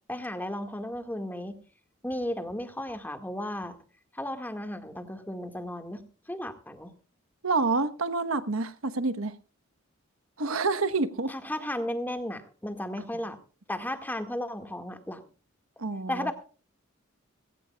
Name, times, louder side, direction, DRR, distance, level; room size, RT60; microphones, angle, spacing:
voice 1, 0.1-1.6 2.0-3.8 4.1-6.0 6.3-6.9 11.3-13.4 13.7-15.2 16.1-16.3, left 1 dB, 10° left, 1.8 m, -34 dB
voice 2, 7.4-9.3 10.4-11.3 13.0-13.1 15.8-16.3, right 3 dB, 85° right, 1.1 m, -28 dB
19.5 x 17.0 x 2.3 m
head